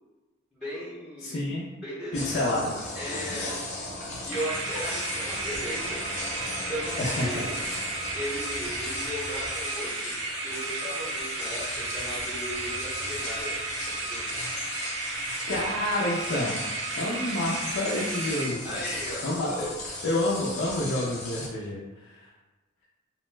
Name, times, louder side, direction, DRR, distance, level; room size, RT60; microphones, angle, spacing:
voice 1, 0.5-1.4 1.8-2.6 2.9-3.6 4.2-6.0 6.7-7.5 8.1-13.6 13.9-14.3 18.6-19.7, equal, 5° left, -12 dB, 0.7 m, -37 dB
voice 2, 1.2-1.7 2.1-2.7 7.0-7.5 8.7-8.8 15.5-16.6 17.0-18.8 19.2-19.5 20.0-22.3, left 1 dB, 60° left, -7 dB, 0.5 m, -29 dB
sound 1, 2.1-21.5, left 2 dB, 35° left, 0.8 m, -37 dB
sound 2, 4.3-19.0, right 3 dB, 65° right, 0.4 m, -34 dB
2.7 x 2.1 x 3.2 m, 1.2 s
head